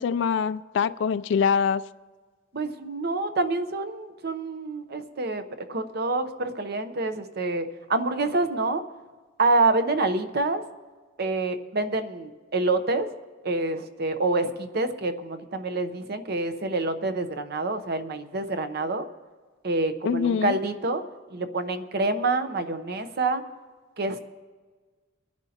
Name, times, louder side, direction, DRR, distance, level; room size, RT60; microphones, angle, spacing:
voice 1, 0.0-1.8 20.0-20.6, left 6 dB, 65° left, 0.3 m, -24 dB
voice 2, 2.5-8.8 9.4-10.6 11.2-13.1 13.4-19.1 19.6-21.0 21.3-23.4 24.0-24.2, right 2 dB, 55° right, 0.8 m, -27 dB
24.0 x 10.5 x 2.9 m
head